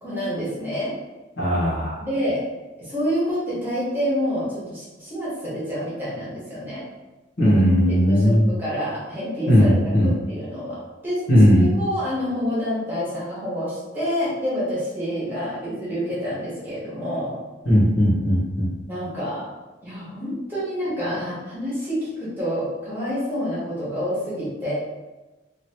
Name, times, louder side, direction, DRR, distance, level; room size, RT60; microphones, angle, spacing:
voice 1, 0.0-0.9 2.0-2.4 2.8-6.8 7.9-10.8 11.0-17.4 18.9-19.4 19.8-24.7, equal, 10° right, -10 dB, 1.2 m, -28 dB
voice 2, 1.4-2.0 7.4-8.4 9.5-10.1 11.3-11.7 17.7-18.7, equal, 75° left, -7 dB, 1.3 m, -17 dB
3.0 x 2.7 x 2.9 m, 1.1 s
head